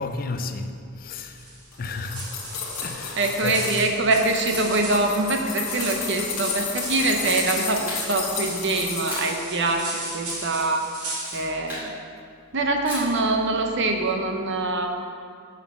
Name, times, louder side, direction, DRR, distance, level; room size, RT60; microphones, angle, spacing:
voice 1, 0.0-2.4 2.8-3.7, left 3 dB, 40° left, 0.5 m, -33 dB
sound 1, 1.4-11.5, right 2 dB, 85° right, 2.1 m, -36 dB
sound 2, 1.7-3.9 4.2-9.4 9.8-10.3 10.6-10.7, left 6 dB, 85° left, 1.4 m, -32 dB
voice 2, 3.2-10.8 11.3-12.0 12.5-15.2, right 2 dB, 55° right, 0.8 m, -24 dB
Camera, 7.2-8.3 9.0-9.4 11.0-11.9 12.8-13.2, equal, 10° right, 2.1 m, -37 dB
7.2 x 5.7 x 5.9 m
head